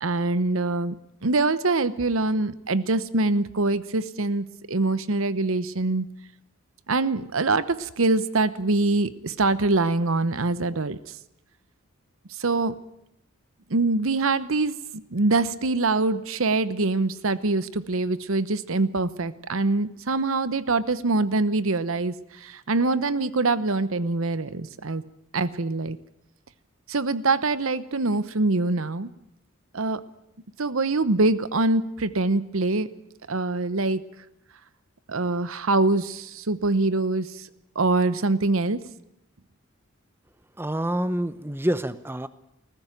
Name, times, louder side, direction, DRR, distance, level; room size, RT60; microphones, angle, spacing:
voice 1, 0.0-0.9 1.2-6.1 6.9-11.0 12.4-12.7 13.7-22.1 22.4-25.0 25.3-26.0 26.9-29.1 29.7-30.0 30.6-32.9 33.3-34.0 35.1-37.3 37.7-38.8, right 3 dB, 70° right, 15 dB, 0.9 m, -24 dB
voice 2, 40.6-42.3, right 1 dB, 10° right, 14 dB, 0.7 m, -27 dB
20.0 x 15.0 x 9.1 m, 0.85 s
head